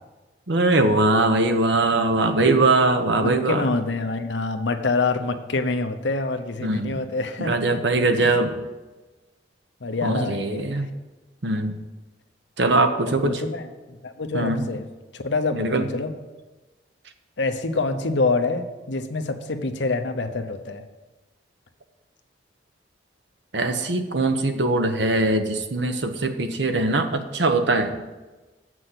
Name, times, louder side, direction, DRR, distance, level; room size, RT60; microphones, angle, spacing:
voice 1, 0.5-3.7 6.6-7.0 7.4-8.6 10.0-10.9 11.4-11.7 12.6-13.4 14.3-14.6 15.5-15.9 23.5-28.0, right 2 dB, 70° right, 7 dB, 0.9 m, -21 dB
voice 2, 3.1-7.8 8.2-8.4 9.8-10.9 13.2-13.7 14.0-14.8 15.1-16.1 17.4-20.8, left 3 dB, 80° left, 7 dB, 0.8 m, -26 dB
7.8 x 6.2 x 7.7 m, 1.2 s
head